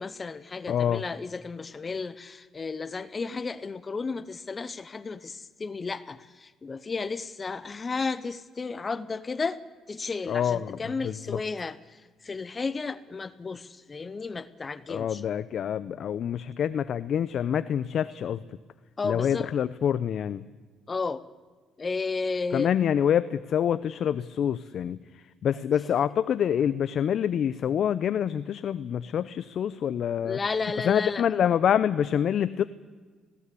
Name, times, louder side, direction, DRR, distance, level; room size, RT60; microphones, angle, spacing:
voice 1, 0.0-9.6 9.9-15.2 19.0-19.5 20.9-21.2 21.8-22.7 30.2-31.3, left 4 dB, 30° left, 16 dB, 0.8 m, -33 dB
voice 2, 0.7-1.0 10.3-11.4 14.9-18.4 19.0-20.4 22.5-30.4 30.8-32.7, left 9 dB, 60° left, 15 dB, 0.6 m, -26 dB
19.5 x 17.5 x 8.4 m, 1.4 s
cardioid pair, 95°, 0 cm